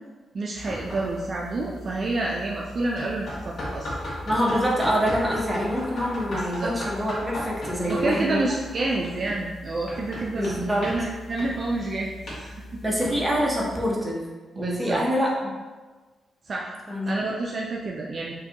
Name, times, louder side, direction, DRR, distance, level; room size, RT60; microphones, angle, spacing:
voice 1, 0.3-3.9 6.3-6.7 7.8-12.8 14.5-15.0 16.5-16.8 17.1-18.3, right 2 dB, 40° right, -2 dB, 0.3 m, -29 dB
sound 1, 0.5-13.9, left 1 dB, 45° left, 0.9 m, -37 dB
voice 2, 4.3-8.4 10.4-10.9 12.8-14.3 14.6-15.5 16.9-17.1, equal, 5° right, -4 dB, 0.7 m, -25 dB
4.6 x 2.2 x 2.8 m, 1.3 s
wide cardioid pair, 155°, 0 cm